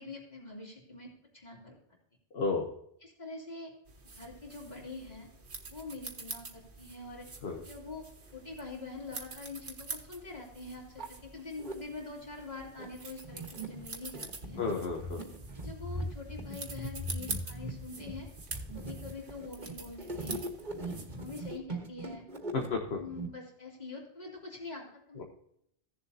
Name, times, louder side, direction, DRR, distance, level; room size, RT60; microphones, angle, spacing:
voice 1, 0.0-1.7 3.0-3.7 4.1-5.3 5.7-7.3 7.6-14.6 15.6-18.3 18.7-20.4 20.8-22.2 22.9-25.2, left 3 dB, 40° left, -2 dB, 3.2 m, -45 dB
voice 2, 2.3-2.7 7.4-7.6 14.6-15.2 22.5-23.0, left 4 dB, 65° left, 1 dB, 1.4 m, -32 dB
sound 1, 3.9-21.6, right 4 dB, 75° right, 1.7 m, -46 dB
sound 2, 9.6-9.7 10.4-10.5 10.8-11.7 12.4-23.3, right 1 dB, 45° right, 1.6 m, -40 dB
15.5 x 7.3 x 2.8 m, 0.73 s
omnidirectional pair, 1.2 m